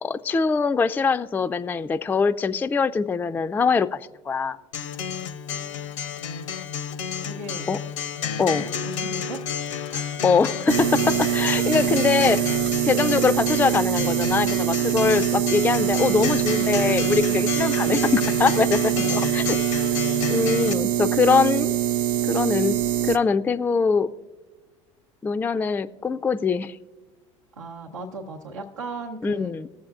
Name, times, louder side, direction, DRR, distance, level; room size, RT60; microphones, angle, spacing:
voice 1, 0.0-4.0 4.3-4.6 7.7-7.8 8.4-8.7 10.2-12.6 12.9-19.6 20.3-21.7 22.3-22.8 23.0-24.1 25.2-26.8 29.2-29.7, left 5 dB, 10° left, 12 dB, 0.3 m, -23 dB
Acoustic guitar, 4.7-20.7, left 7 dB, 75° left, 0.6 m, -31 dB
voice 2, 7.2-7.7 8.8-9.4 9.9-10.2 27.6-29.5, right 2 dB, 90° right, -3 dB, 0.8 m, -36 dB
sound 1, 10.7-23.2, right 12 dB, 55° right, 0.4 m, -24 dB
20.0 x 7.4 x 2.4 m, 1.2 s
hypercardioid pair, 75°, 16 cm